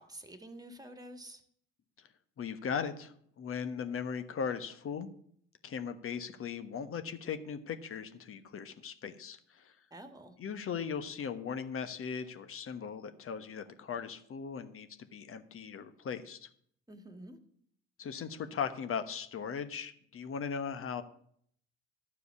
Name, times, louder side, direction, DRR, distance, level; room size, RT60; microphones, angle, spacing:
voice 1, 0.0-1.4 9.9-10.4 16.9-17.4, right 1 dB, 10° right, 9 dB, 1.8 m, -49 dB
voice 2, 2.4-5.1 5.6-9.7 10.4-16.5 18.0-21.0, left 6 dB, 40° left, 9 dB, 1.2 m, -38 dB
12.0 x 4.9 x 8.2 m, 0.65 s
hypercardioid pair, 60°, 32 cm